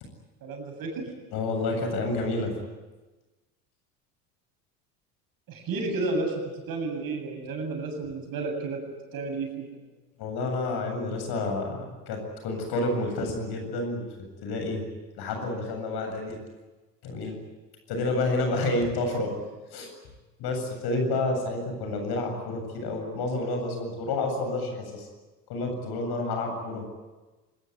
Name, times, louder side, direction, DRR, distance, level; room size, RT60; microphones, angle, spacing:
voice 1, 0.4-1.1 5.5-8.8 9.1-9.7, right 3 dB, 45° right, 3 dB, 8.0 m, -31 dB
voice 2, 1.3-2.6 10.2-14.0 14.4-14.9 15.2-16.4 17.0-17.4 17.9-19.4 19.7-19.9 20.4-25.1 25.5-26.9, left 2 dB, 50° left, 4 dB, 8.0 m, -29 dB
25.5 x 21.0 x 9.8 m, 1.2 s
figure-of-eight pair, 65°, 48 cm